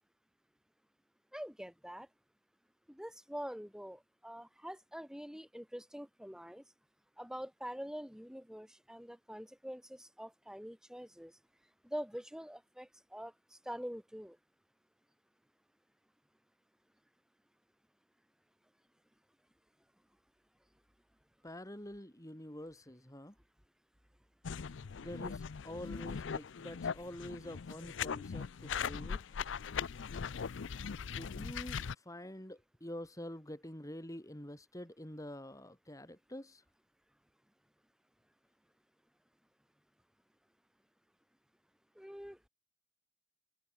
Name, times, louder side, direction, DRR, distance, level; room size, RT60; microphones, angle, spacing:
voice 1, 1.3-2.1 2.9-6.6 7.2-11.3 11.8-13.3 13.7-14.4 42.0-42.5, equal, 5° right, 3.7 m, -45 dB
voice 2, 21.4-23.3 25.0-29.4 31.1-36.6, left 1 dB, 15° left, 3.0 m, -47 dB
sound 1, 24.4-31.9, left 6 dB, 75° left, 0.5 m, -40 dB
open air
head